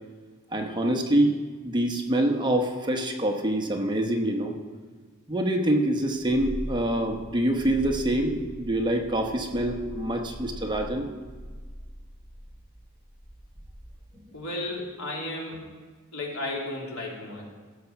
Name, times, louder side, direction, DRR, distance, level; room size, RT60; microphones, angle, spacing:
voice 1, 0.5-4.5 5.3-11.1, right 1 dB, 20° right, 2 dB, 1.0 m, -25 dB
Purr, 6.1-14.2, equal, 25° left, 2.6 m, -41 dB
voice 2, 14.1-15.6 16.1-17.4, left 2 dB, 85° left, -2 dB, 3.0 m, -34 dB
15.5 x 7.0 x 5.9 m, 1.5 s
head